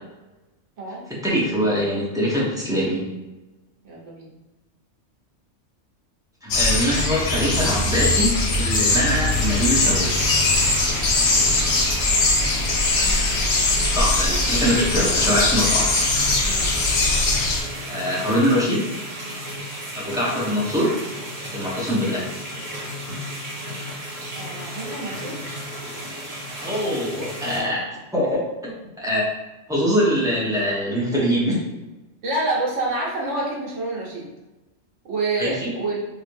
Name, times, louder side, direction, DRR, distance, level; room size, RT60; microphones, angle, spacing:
voice 1, 1.2-3.1 6.4-10.1 13.9-15.9 17.9-18.9 19.9-21.0 21.5-22.3 26.6-28.7 29.0-29.2 29.7-31.6 35.4-35.7, equal, 5° right, -7 dB, 0.7 m, -23 dB
voice 2, 3.8-4.3 13.0-14.0 16.4-16.9 24.3-25.4 32.2-34.3 35.1-36.0, right 2 dB, 85° right, -4 dB, 1.2 m, -28 dB
sound 1, 6.5-17.6, left 2 dB, 80° left, 1.0 m, -21 dB
sound 2, 9.3-27.6, equal, 40° right, 0.7 m, -34 dB
3.2 x 2.9 x 2.6 m, 1.1 s
omnidirectional pair, 1.2 m